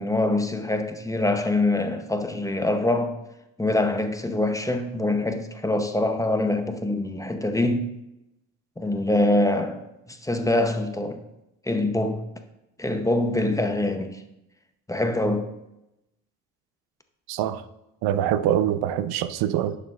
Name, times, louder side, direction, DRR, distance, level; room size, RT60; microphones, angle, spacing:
voice 1, 0.0-3.2 3.6-8.0 8.8-11.2 11.6-12.3 12.8-14.2 14.9-15.5, left 2 dB, 10° left, 0.7 m, -24 dB
voice 2, 17.3-17.7 18.0-19.8, right 11 dB, 80° right, 0.6 m, -24 dB
11.0 x 6.7 x 2.4 m
supercardioid pair, 85°, 37 cm